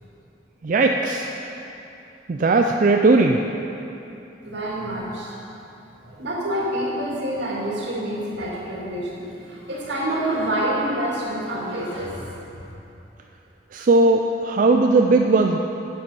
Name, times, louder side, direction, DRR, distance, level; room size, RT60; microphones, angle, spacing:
voice 1, 0.6-1.3 2.3-3.4 13.7-15.6, right 3 dB, 45° right, 3 dB, 0.4 m, -18 dB
voice 2, 4.4-5.3 6.0-12.6, right 1 dB, 80° right, -4 dB, 2.3 m, -27 dB
9.6 x 7.7 x 5.6 m, 2.9 s
head